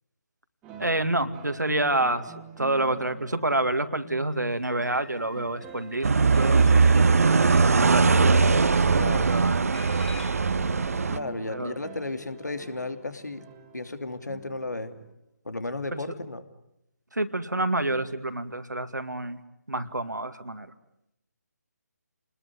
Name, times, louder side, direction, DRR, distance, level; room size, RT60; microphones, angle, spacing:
sound 1, 0.6-15.1, right 6 dB, 10° right, 2.3 m, -48 dB
voice 1, 0.8-8.4 9.3-9.8 11.5-11.8 15.9-16.0 17.1-19.4 19.7-20.7, right 2 dB, 85° right, 9 dB, 2.2 m, -28 dB
sound 2, 4.3-10.5, left 5 dB, 5° left, 1.7 m, -50 dB
sound 3, 6.0-11.2, right 4 dB, 55° right, 1.1 m, -20 dB
voice 2, 8.9-9.4 11.1-13.4 13.7-15.0 15.4-16.4, left 2 dB, 75° left, 10 dB, 2.8 m, -34 dB
29.0 x 20.5 x 9.8 m, 0.83 s
figure-of-eight pair, 150°, 9 cm